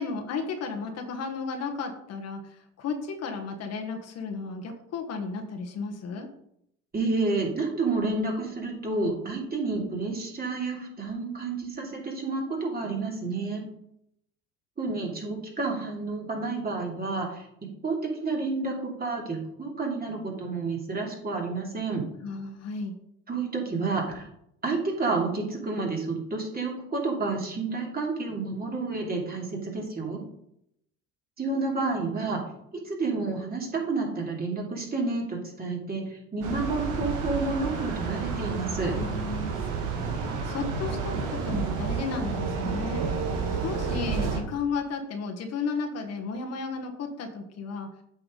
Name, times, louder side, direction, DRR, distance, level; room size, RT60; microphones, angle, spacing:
voice 1, 0.0-6.3 22.2-22.9 38.9-39.6 39.9-43.0 43.6-47.9, left 4 dB, 50° left, 3 dB, 1.4 m, -34 dB
voice 2, 6.9-13.6 14.8-17.5 17.8-22.0 23.3-24.3 24.6-30.2 31.4-32.4 32.7-38.9, right 3 dB, 30° right, -1 dB, 2.8 m, -30 dB
sound 1, 36.4-44.4, right 5 dB, 70° right, 1.8 m, -30 dB
8.3 x 5.8 x 3.9 m, 0.74 s
supercardioid pair, 90°, 32 cm